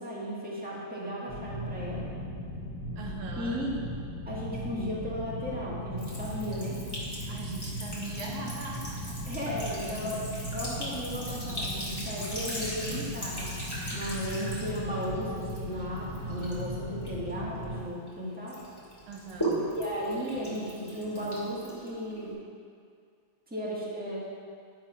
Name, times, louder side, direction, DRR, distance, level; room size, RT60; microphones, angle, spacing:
voice 1, 0.0-2.1 3.4-3.8 4.2-6.8 9.3-18.6 19.7-22.4 23.5-24.2, equal, 5° right, -6 dB, 1.4 m, -35 dB
sound 1, 1.3-17.8, equal, 55° left, 2.3 m, -38 dB
voice 2, 3.0-3.7 7.3-9.2 9.7-9.8 10.1-10.2 10.5-10.9 19.1-19.8, right 3 dB, 90° right, 0 dB, 1.8 m, -41 dB
Sink (filling or washing) / Trickle dribble, 6.0-18.1 18.5-22.3, right 1 dB, 10° left, 2.0 m, -39 dB
10.5 x 4.7 x 5.6 m, 2.3 s
omnidirectional pair, 2.3 m